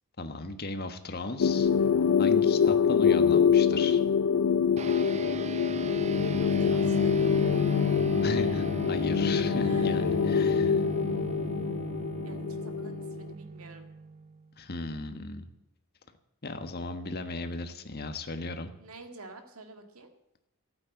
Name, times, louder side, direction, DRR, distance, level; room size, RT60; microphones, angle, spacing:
voice 1, 0.2-1.7 2.2-4.0 8.2-10.8 14.6-15.5 16.4-18.7, left 2 dB, 45° left, 8 dB, 1.3 m, -36 dB
sound 1, 1.4-13.3, left 6 dB, 75° left, 0.4 m, -25 dB
sound 2, 4.8-14.5, right 4 dB, 30° right, 0.4 m, -38 dB
voice 2, 6.2-7.1 9.6-10.2 10.8-11.0 12.2-13.9 18.8-20.1, right 2 dB, 85° right, 6 dB, 2.0 m, -48 dB
12.5 x 8.8 x 8.8 m, 0.85 s
head